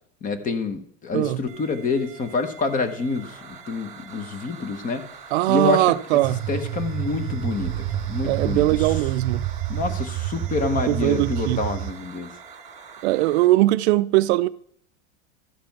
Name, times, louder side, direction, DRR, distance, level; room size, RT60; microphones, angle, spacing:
voice 1, 0.2-5.1 5.5-5.8 6.1-6.2 6.5-8.6 9.7-12.3, left 4 dB, 20° left, 0.9 m, -27 dB
sound 1, 1.5-13.5, right 6 dB, 20° right, 2.0 m, -44 dB
voice 2, 5.3-6.4 8.2-9.5 10.9-11.6 13.0-14.5, right 17 dB, 65° right, 0.5 m, -20 dB
sound 2, 6.2-11.9, right 12 dB, 35° right, 1.1 m, -29 dB
13.0 x 5.1 x 5.8 m
supercardioid pair, 140°, 36 cm